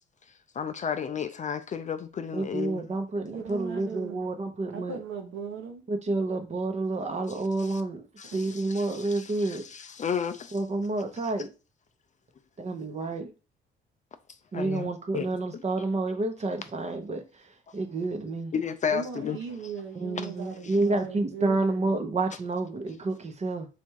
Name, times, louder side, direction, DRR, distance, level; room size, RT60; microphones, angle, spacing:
voice 1, 0.5-2.8 7.3-7.8 8.2-10.6 14.5-14.9 15.1-15.3 18.5-19.4 20.6-20.8, left 7 dB, 40° left, 0.4 m, -33 dB
voice 2, 2.3-5.0 5.9-8.1 8.3-9.6 10.5-11.5 12.6-13.3 14.5-17.5 17.7-18.5 20.0-23.7, right 2 dB, 35° right, 0.8 m, -29 dB
voice 3, 3.3-4.3 4.7-5.8 18.9-21.9, right 6 dB, 85° right, 1.1 m, -38 dB
3.5 x 2.6 x 4.5 m
cardioid pair, 90°, 20 cm